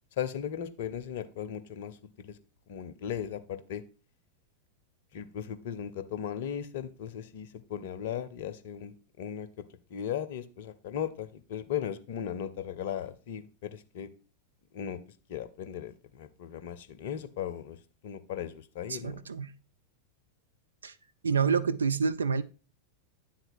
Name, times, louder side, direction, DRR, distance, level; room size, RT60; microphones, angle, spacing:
voice 1, 0.2-2.4 2.7-3.8 5.1-9.6 9.9-14.1 14.7-15.0 15.3-17.8 18.0-19.2, left 9 dB, 55° left, 0.6 m, -37 dB
voice 2, 18.9-19.5 20.8-21.0 21.2-22.4, right 5 dB, 70° right, 0.4 m, -28 dB
9.0 x 3.9 x 4.3 m
figure-of-eight pair, 90°, 0 cm